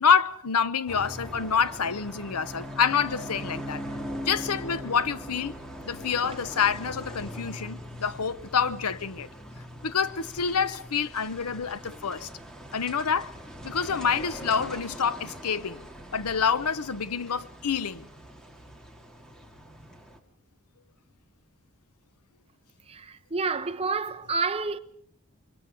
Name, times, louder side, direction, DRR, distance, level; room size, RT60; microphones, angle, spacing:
voice 1, 0.0-3.8 4.3-5.5 5.9-9.3 9.8-12.3 12.7-13.3 13.6-15.8 16.1-18.1, left 6 dB, 90° left, 0.9 m, -27 dB
sound 1, 0.9-20.2, equal, 5° left, 2.1 m, -41 dB
voice 2, 22.9-24.8, right 4 dB, 25° right, 0.9 m, -29 dB
26.5 x 23.5 x 5.3 m
head